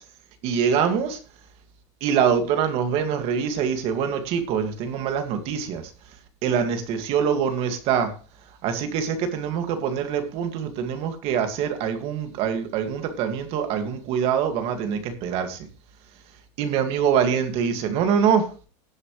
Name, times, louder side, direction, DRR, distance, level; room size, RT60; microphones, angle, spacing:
voice 1, 0.4-1.2 2.0-5.8 6.4-8.1 8.6-15.7 16.6-18.5, right 7 dB, 35° right, 2.1 m, -24 dB
18.5 x 7.6 x 3.2 m
supercardioid pair, 175°, 17 cm